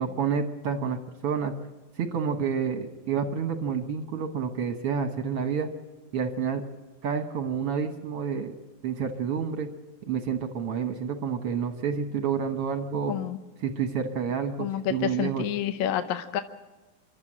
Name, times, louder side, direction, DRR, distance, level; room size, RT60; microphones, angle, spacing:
voice 1, 0.0-1.5 2.0-5.7 6.1-6.6 7.0-8.5 8.8-9.7 10.1-13.1 13.6-15.4, right 6 dB, 60° right, 7 dB, 1.6 m, -29 dB
voice 2, 13.1-13.4 14.6-16.4, left 10 dB, 70° left, 9 dB, 1.8 m, -29 dB
28.5 x 12.5 x 8.7 m, 1.2 s
omnidirectional pair, 4.0 m